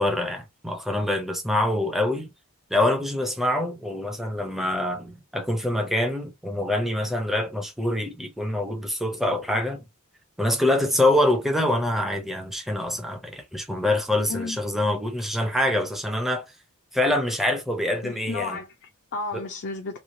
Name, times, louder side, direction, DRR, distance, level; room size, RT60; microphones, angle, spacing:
voice 1, 0.0-2.3 2.7-9.8 10.4-16.4 16.9-18.6 19.3-19.4, left 1 dB, ahead, 0.6 m, -25 dB
voice 2, 14.3-14.6 18.0-20.0, left 3 dB, 55° left, 0.5 m, -33 dB
3.1 x 2.3 x 2.6 m
head